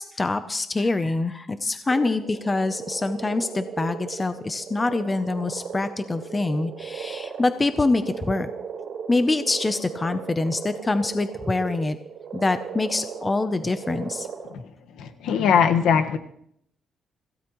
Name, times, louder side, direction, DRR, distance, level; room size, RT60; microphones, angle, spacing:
voice 1, 0.0-8.5 9.1-12.0 12.3-14.3, left 3 dB, 15° left, 10 dB, 0.6 m, -25 dB
sound 1, 1.9-14.5, right 6 dB, 55° right, 5.2 m, -37 dB
voice 2, 14.9-16.2, left 7 dB, 80° left, 6 dB, 1.4 m, -21 dB
25.5 x 16.5 x 3.1 m, 0.71 s
cardioid pair, 170°, 0 cm